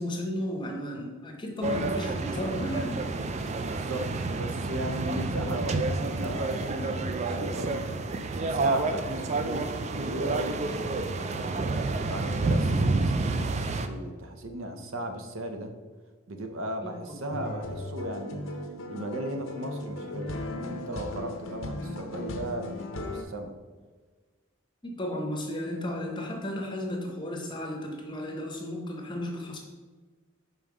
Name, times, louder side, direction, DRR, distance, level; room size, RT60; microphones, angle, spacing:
voice 1, 0.0-3.0 16.8-17.5 24.8-29.6, left 1 dB, 25° left, 2 dB, 0.7 m, -34 dB
sound 1, 1.6-13.9, right 3 dB, 35° right, 0.3 m, -29 dB
voice 2, 3.6-8.0 8.4-11.6 12.1-15.7 16.3-18.5 18.9-23.5, right 1 dB, 80° right, 6 dB, 0.8 m, -37 dB
sound 2, 17.3-23.2, left 2 dB, 80° left, 0.7 m, -37 dB
5.5 x 3.9 x 4.8 m, 1.4 s
head